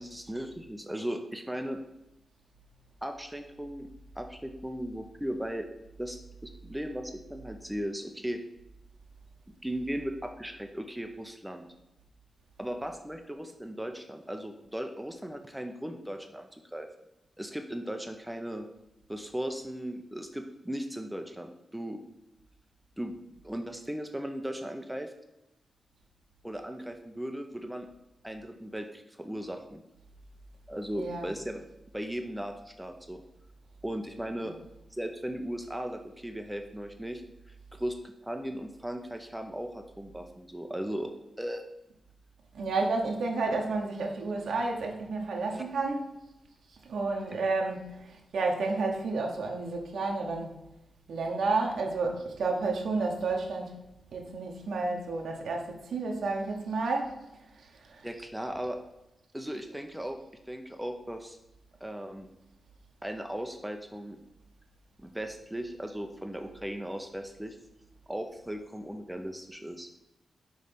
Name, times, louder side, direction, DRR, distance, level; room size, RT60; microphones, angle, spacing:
voice 1, 0.0-1.8 3.0-3.9 4.2-5.7 6.0-8.4 9.6-11.7 12.6-16.9 17.4-18.7 19.1-22.0 23.0-23.1 23.4-25.1 26.4-27.9 28.2-29.8 30.7-31.6 31.9-33.2 33.8-34.5 34.9-38.0 38.2-41.6 45.5-45.6 58.0-58.8 59.3-60.2 60.5-61.4 61.8-62.3 63.0-64.2 65.0-67.6 68.1-69.9, equal, 5° right, 0.6 m, -37 dB
voice 2, 30.9-31.3 42.5-46.0 46.8-50.6 51.1-53.8 54.1-57.2 57.6-58.0, right 3 dB, 85° right, 1.0 m, -31 dB
6.4 x 3.2 x 5.3 m
cardioid pair, 90°, 0 cm